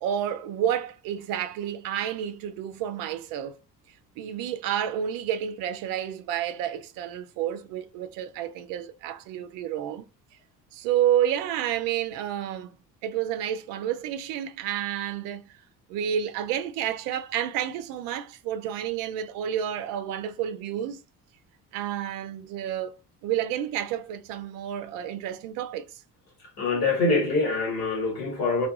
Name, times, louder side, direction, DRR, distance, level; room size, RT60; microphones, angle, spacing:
voice 1, 0.0-3.6 4.2-10.1 10.7-12.7 13.0-15.6 15.9-21.0 21.7-26.0, right 10 dB, 45° right, 0.4 m, -30 dB
voice 2, 26.6-28.7, left 3 dB, 75° left, 1.2 m, -24 dB
2.4 x 2.2 x 2.6 m
figure-of-eight pair, 50°, 49 cm